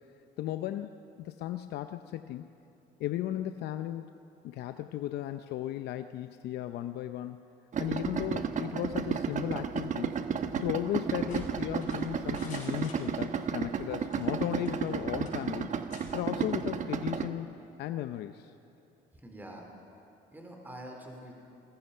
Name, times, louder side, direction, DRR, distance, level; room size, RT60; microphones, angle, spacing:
voice 1, 0.4-2.5 3.0-4.1 4.4-7.5 7.8-10.1 10.5-15.7 16.1-17.5 17.8-18.5, left 12 dB, 75° left, 9 dB, 0.7 m, -35 dB
Idling, 7.7-17.3, right 6 dB, 45° right, 1.1 m, -33 dB
sound 1, 11.3-13.5 14.0-15.0 15.2-15.4 15.9-16.1, left 4 dB, 45° left, 6.6 m, -50 dB
voice 2, 19.1-19.8 20.3-21.3, right 1 dB, 10° right, 2 dB, 3.5 m, -47 dB
29.0 x 21.0 x 5.6 m, 2.8 s
cardioid pair, 110°, 17 cm